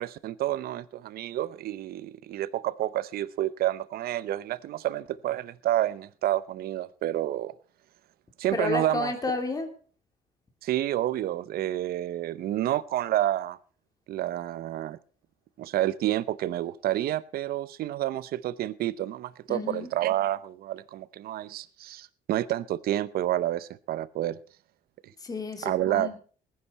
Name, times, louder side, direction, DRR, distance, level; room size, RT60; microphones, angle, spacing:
voice 1, 0.0-7.5 8.4-9.1 10.6-13.6 14.1-15.0 15.6-24.4 25.6-26.1, right 13 dB, 65° right, 0.7 m, -29 dB
voice 2, 8.5-9.7 19.5-19.9 25.2-26.2, left 3 dB, 20° left, 2.7 m, -31 dB
18.5 x 10.5 x 4.2 m
cardioid pair, 110°, 17 cm